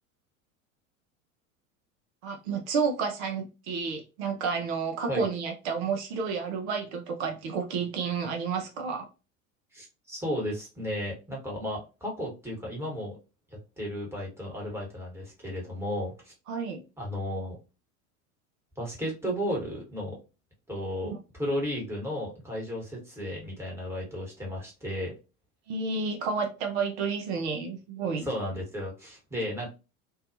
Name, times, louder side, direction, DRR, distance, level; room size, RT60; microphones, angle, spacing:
voice 1, 2.2-9.1 16.5-16.8 25.7-28.3, right 5 dB, 55° right, 0.6 m, -30 dB
voice 2, 9.7-13.2 13.8-16.3 17.0-17.6 18.8-20.2 20.7-25.1 28.2-29.7, equal, 5° right, 1.3 m, -34 dB
2.6 x 2.3 x 2.6 m
figure-of-eight pair, 80°, 42 cm